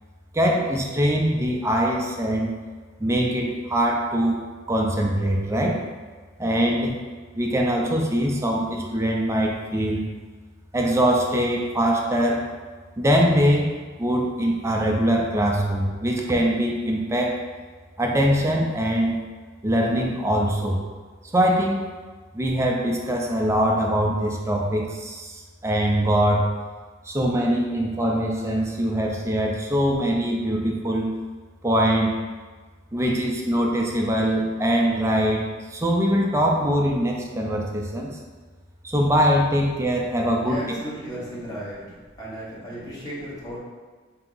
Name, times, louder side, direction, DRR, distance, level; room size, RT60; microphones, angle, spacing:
voice 1, 0.3-2.5 3.0-4.4 4.7-5.8 6.4-7.0 7.3-10.0 10.7-12.4 13.0-13.7 14.0-17.4 18.0-19.2 19.6-20.8 21.3-21.9 22.3-26.5 27.0-31.1 31.6-32.1 32.9-38.1 38.8-40.8, equal, 15° right, 0 dB, 0.4 m, -22 dB
voice 2, 40.4-41.9 42.2-43.6, equal, 20° left, -8 dB, 0.9 m, -35 dB
3.4 x 2.8 x 3.8 m, 1.4 s
head